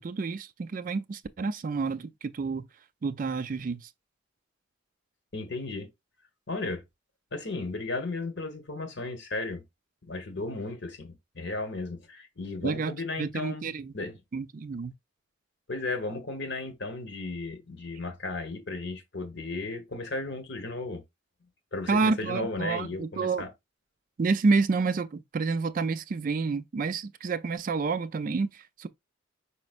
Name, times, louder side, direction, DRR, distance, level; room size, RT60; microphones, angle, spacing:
voice 1, 0.0-2.7 3.0-3.8 12.6-12.9 13.2-13.9 14.3-14.9 21.9-23.4 24.2-28.9, right 4 dB, 45° right, 0.4 m, -29 dB
voice 2, 5.3-5.9 6.5-6.8 7.3-9.6 10.0-14.2 15.7-21.0 21.7-23.5, left 2 dB, 60° left, 1.2 m, -35 dB
5.1 x 4.3 x 2.4 m
head